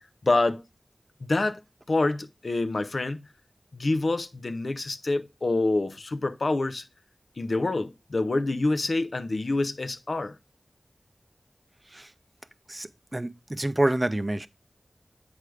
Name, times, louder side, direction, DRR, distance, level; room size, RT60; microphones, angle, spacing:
voice 1, 0.2-0.6 1.2-1.6 1.9-3.2 3.7-6.8 7.4-10.4, left 2 dB, 70° left, 0.6 m, -26 dB
voice 2, 12.7-14.5, right 1 dB, 30° right, 0.5 m, -27 dB
7.8 x 4.9 x 3.2 m
wide cardioid pair, 45°, 0 cm